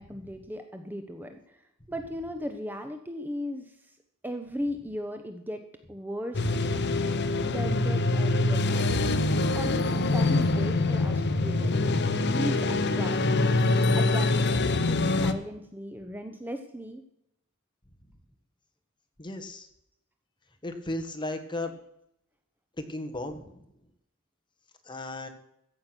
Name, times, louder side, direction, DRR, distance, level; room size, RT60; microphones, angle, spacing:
voice 1, 0.0-1.6 1.9-3.8 4.2-5.6 5.9-6.6 7.4-8.9 9.5-17.0, equal, 10° right, 6 dB, 0.9 m, -37 dB
sound 1, 6.3-15.3, left 2 dB, 55° left, 1.0 m, -25 dB
voice 2, 19.2-19.7 20.6-21.7 22.8-23.6 24.8-25.3, left 2 dB, 20° left, 5 dB, 1.5 m, -35 dB
14.5 x 8.6 x 6.1 m, 0.79 s
head